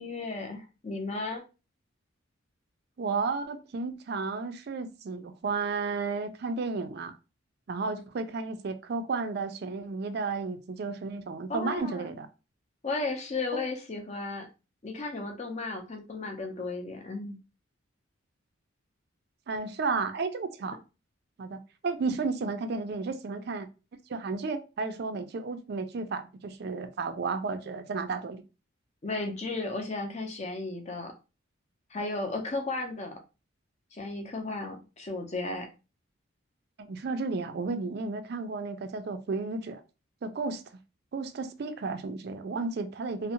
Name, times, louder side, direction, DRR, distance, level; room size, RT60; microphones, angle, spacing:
voice 1, 0.0-1.4 11.5-12.1 12.8-14.5 14.8-17.4 29.0-31.1 31.9-33.2 33.9-35.7, left 3 dB, 35° left, 0.5 m, -34 dB
voice 2, 3.0-7.1 7.7-12.3 13.5-13.6 19.5-20.8 21.4-23.7 24.1-28.4 36.8-39.8 40.2-40.6 41.1-43.3, right 4 dB, 50° right, 0.4 m, -33 dB
2.6 x 2.0 x 2.8 m
head